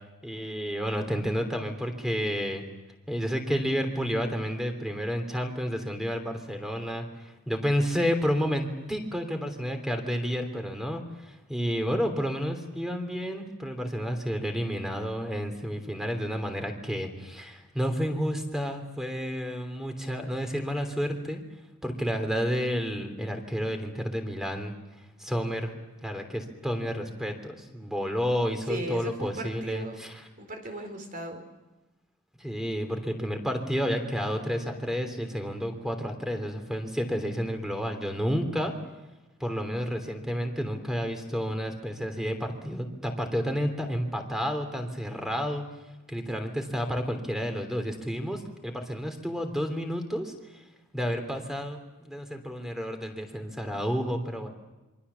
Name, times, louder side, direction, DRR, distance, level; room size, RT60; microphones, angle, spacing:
voice 1, 0.2-2.6 3.1-21.4 21.8-24.7 25.2-25.7 26.0-30.2 32.4-38.7 39.4-45.6 46.1-50.6 50.9-54.5, equal, ahead, 5 dB, 3.2 m, -30 dB
voice 2, 28.7-30.0 30.4-31.4, right 1 dB, 40° right, 5 dB, 4.4 m, -36 dB
27.0 x 24.5 x 7.1 m, 1.1 s
head